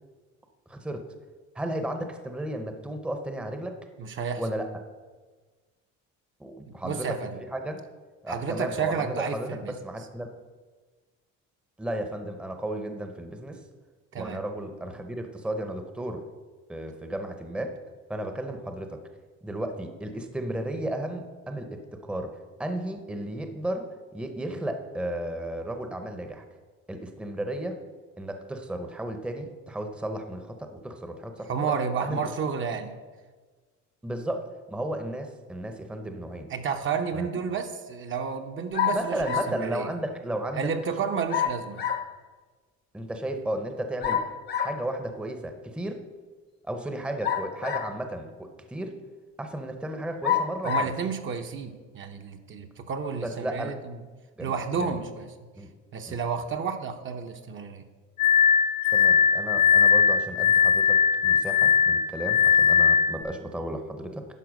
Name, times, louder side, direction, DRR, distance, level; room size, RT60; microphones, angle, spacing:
voice 1, 0.7-1.1 1.5-3.8 4.4-4.7 6.4-7.2 7.5-7.8 8.2-10.3 11.8-13.6 14.1-16.2 16.7-17.7 18.1-19.0 19.4-26.4 26.9-27.8 28.2-31.7 32.0-32.2 34.0-36.5 37.1-37.3 38.9-40.7 42.9-44.2 44.6-46.0 46.6-48.9 49.4-50.9 53.2-53.7 54.4-55.0 55.5-55.7 56.1-56.2 58.9-64.3, right 1 dB, 5° right, 6 dB, 0.7 m, -34 dB
voice 2, 4.0-4.4 6.7-7.4 8.3-9.7 14.1-14.4 31.5-33.0 36.5-39.9 40.6-41.9 50.6-54.0 54.4-55.3 55.9-57.8, right 6 dB, 40° right, 5 dB, 0.7 m, -31 dB
sound 1, 38.7-39.6 41.3-42.1 44.0-44.8 47.2-48.1 48.8-48.9 50.2-51.0, left 8 dB, 35° left, 0.7 m, -28 dB
Glass, 58.2-63.2, left 7 dB, 75° left, 0.7 m, -20 dB
11.0 x 4.5 x 6.4 m, 1.4 s
cardioid pair, 130°, 30 cm